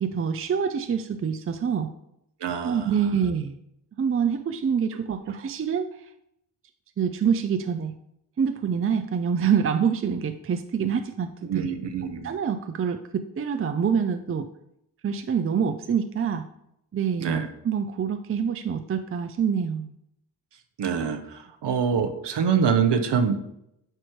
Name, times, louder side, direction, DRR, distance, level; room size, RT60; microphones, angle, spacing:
voice 1, 0.0-1.9 2.6-3.6 4.0-5.9 7.0-7.9 8.4-11.7 12.2-14.5 15.0-16.4 16.9-19.9, right 7 dB, 30° right, 8 dB, 0.6 m, -26 dB
voice 2, 2.4-2.9 11.4-12.3 17.2-17.5 20.8-23.4, right 6 dB, 55° right, 7 dB, 1.0 m, -25 dB
9.0 x 3.0 x 5.0 m, 0.78 s
hypercardioid pair, 40°, 49 cm